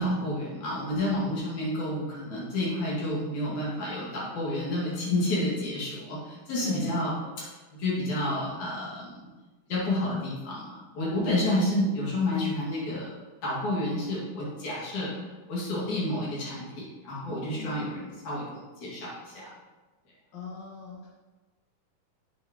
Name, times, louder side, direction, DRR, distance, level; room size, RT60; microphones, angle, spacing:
voice 1, 0.0-7.5 7.8-9.3 9.7-13.1 13.4-19.5, left 1 dB, 65° left, -6 dB, 3.5 m, -30 dB
voice 2, 6.5-6.9 7.2-7.3 11.1-11.3 17.3-18.1 20.3-21.1, left 5 dB, 45° left, -4 dB, 1.7 m, -43 dB
8.2 x 8.0 x 3.0 m, 1.2 s
omnidirectional pair, 3.6 m